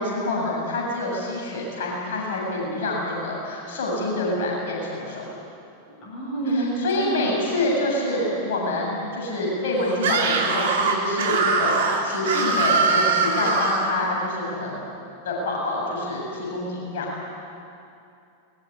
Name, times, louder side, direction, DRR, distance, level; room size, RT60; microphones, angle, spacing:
voice 1, 0.0-5.3 6.5-14.9 15.2-17.1, left 1 dB, 55° left, -2 dB, 7.7 m, -27 dB
voice 2, 6.0-7.4, right 2 dB, 35° left, -3 dB, 7.2 m, -27 dB
Screaming, 10.0-13.9, right 4 dB, 60° right, 3.1 m, -22 dB
22.0 x 21.5 x 9.9 m, 2.6 s
figure-of-eight pair, 90°, 0 cm